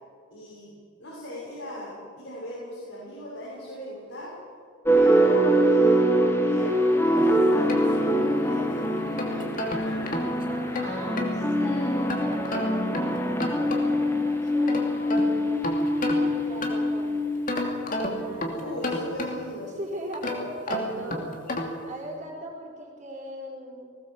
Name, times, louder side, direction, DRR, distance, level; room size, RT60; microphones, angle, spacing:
voice 1, 0.3-0.7 1.0-4.3 4.9-10.7 18.5-19.7, left 1 dB, 75° left, -7 dB, 6.8 m, -39 dB
sound 1, 4.9-18.2, right 1 dB, 10° left, 1.8 m, -24 dB
sound 2, 7.2-8.5 9.0-11.4 12.1-14.1 14.5-17.0 17.5-19.6 20.1-21.9, left 1 dB, 45° left, 2.8 m, -32 dB
voice 2, 10.7-15.7 16.1-17.3 18.1-18.9 19.2-21.3 21.8-24.0, right 1 dB, 35° right, 0 dB, 4.9 m, -40 dB
20.0 x 18.0 x 7.4 m, 2.1 s
head